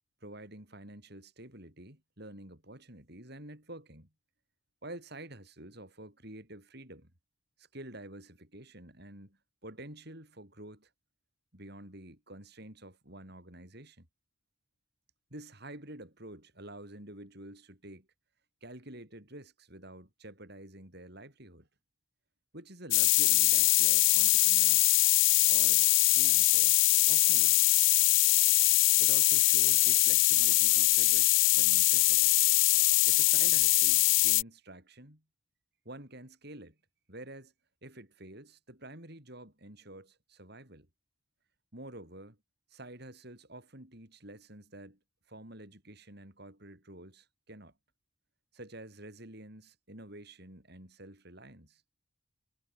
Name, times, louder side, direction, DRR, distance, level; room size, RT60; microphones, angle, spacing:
voice 1, 0.2-4.1 4.8-7.1 7.6-10.9 11.5-14.1 15.3-18.1 18.6-21.7 22.5-24.9 25.5-27.6 29.0-32.4 33.0-35.2 35.8-36.8 37.1-37.5 37.8-40.9 41.7-42.4 42.7-45.0 45.3-47.7 48.5-51.8, right 1 dB, 50° right, 6.7 m, -49 dB
sound 1, 22.9-34.4, left 23 dB, 65° left, 0.3 m, -23 dB
head